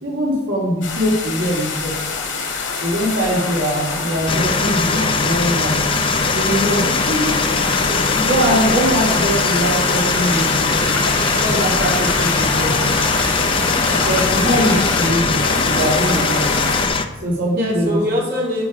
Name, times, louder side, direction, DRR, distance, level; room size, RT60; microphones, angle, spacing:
voice 1, 0.0-1.9 2.8-5.8 6.3-6.8 7.9-10.7 11.3-12.9 13.9-16.4 17.2-18.0, equal, 85° right, -4 dB, 2.9 m, -21 dB
sound 1, 0.8-16.9, left 4 dB, 80° left, 2.8 m, -24 dB
sound 2, 4.3-17.1, left 4 dB, 30° left, 0.7 m, -21 dB
voice 2, 6.8-7.4 12.2-12.5 17.6-18.6, left 1 dB, 55° right, -5 dB, 3.8 m, -24 dB
sound 3, 10.3-15.3, left 1 dB, 10° left, 1.5 m, -29 dB
12.5 x 5.9 x 5.1 m, 1.1 s
head